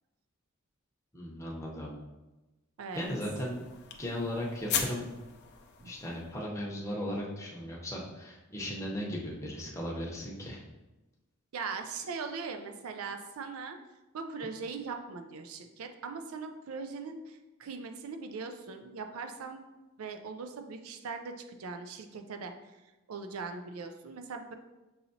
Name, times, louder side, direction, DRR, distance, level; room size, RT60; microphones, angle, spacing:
voice 1, 1.1-1.9 3.0-3.6 4.0-5.1 5.8-10.6, left 1 dB, 15° left, -4 dB, 0.7 m, -36 dB
sound 1, 2.9-6.5, left 7 dB, 50° left, 0.4 m, -38 dB
voice 2, 11.5-13.8 14.1-19.6 20.0-24.5, right 4 dB, 85° right, 6 dB, 0.4 m, -40 dB
5.4 x 2.9 x 2.7 m, 1.1 s
head